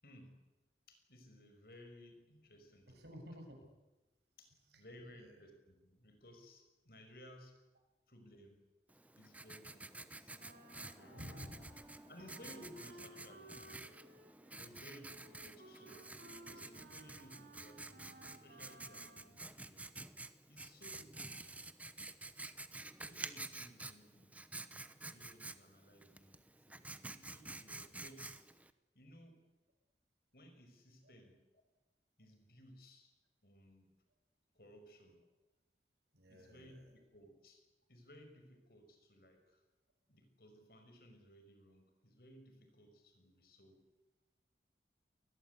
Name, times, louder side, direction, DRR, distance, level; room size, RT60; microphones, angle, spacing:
voice 1, 0.0-0.4 0.9-3.0 4.4-7.6 8.1-8.6 9.2-10.5 10.7-11.4 12.1-13.6 14.5-16.1 16.5-19.8 20.5-21.7 23.0-24.4 25.0-28.4 28.9-29.4 30.3-31.4 32.2-33.1 33.4-33.9 34.5-35.2 36.3-37.6 37.9-39.6 40.1-43.8, equal, 60° left, 6 dB, 5.9 m, -59 dB
voice 2, 2.9-3.7 4.7-5.4 11.1-11.8 14.6-14.8 31.0-31.1 36.1-36.9, equal, 75° right, 3 dB, 7.4 m, -53 dB
Writing, 8.9-28.7, right 2 dB, 10° right, 0.9 m, -50 dB
Wind instrument woodwind instrument, 10.4-19.4, right 1 dB, 60° right, 5.0 m, -59 dB
28.5 x 21.5 x 8.4 m, 1.0 s
head